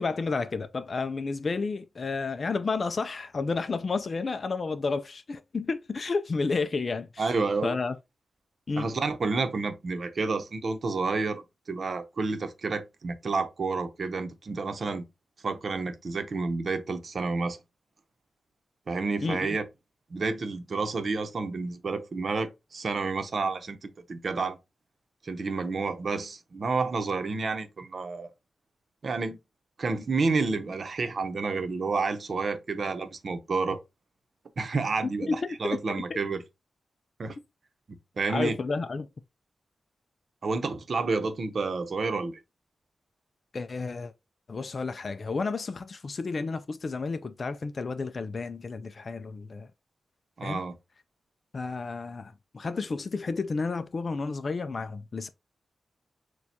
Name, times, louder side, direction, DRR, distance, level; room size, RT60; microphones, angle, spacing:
voice 1, 0.0-7.3 7.6-8.0 8.7-8.9 19.2-19.6 35.0-35.5 36.1-36.2 38.3-39.1 43.5-44.1 44.5-49.7 50.4-50.6 51.5-55.3, left 4 dB, 45° left, 0.3 m, -31 dB
voice 2, 7.2-7.8 8.8-11.4 11.7-15.0 15.4-17.6 18.9-19.6 20.1-24.6 25.2-28.3 29.0-29.4 29.8-33.8 34.6-36.4 37.2-37.4 37.9-38.6 40.4-42.3 50.4-50.7, right 4 dB, 55° right, 0.8 m, -30 dB
6.4 x 2.3 x 2.8 m
wide cardioid pair, 95°, 0 cm